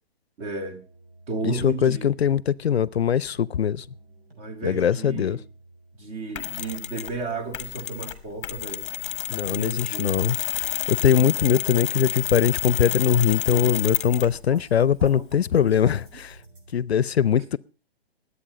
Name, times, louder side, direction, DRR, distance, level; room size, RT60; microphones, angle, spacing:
voice 1, 0.4-0.8 1.3-2.1 4.4-5.4 5.9-8.9 9.5-10.2 13.5-13.6 14.2-15.4 15.8-15.9, right 3 dB, 25° right, 2.3 m, -34 dB
sound 1, 0.8-16.8, right 2 dB, 70° right, 5.8 m, -52 dB
voice 2, 1.4-3.8 4.6-5.4 9.3-10.4 10.9-16.3 16.7-17.6, left 8 dB, 85° left, 0.6 m, -22 dB
Mechanisms, 6.4-7.2 7.5-14.4, left 11 dB, 30° left, 1.0 m, -30 dB
20.5 x 8.5 x 5.0 m
hypercardioid pair, 150°, 31 cm